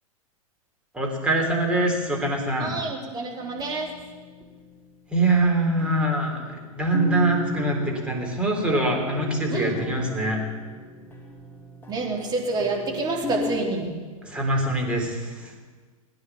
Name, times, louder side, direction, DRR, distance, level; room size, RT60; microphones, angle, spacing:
voice 1, 0.9-2.8 5.1-10.4 14.2-15.5, right 2 dB, 5° right, -1 dB, 3.8 m, -24 dB
voice 2, 2.6-3.9 9.5-9.8 11.9-13.9, right 3 dB, 20° right, -1 dB, 3.6 m, -28 dB
sound 1, 3.4-4.9 5.8-13.6, left 2 dB, 10° left, 3.2 m, -37 dB
18.5 x 10.0 x 7.3 m, 1.4 s
figure-of-eight pair, 100°, 18 cm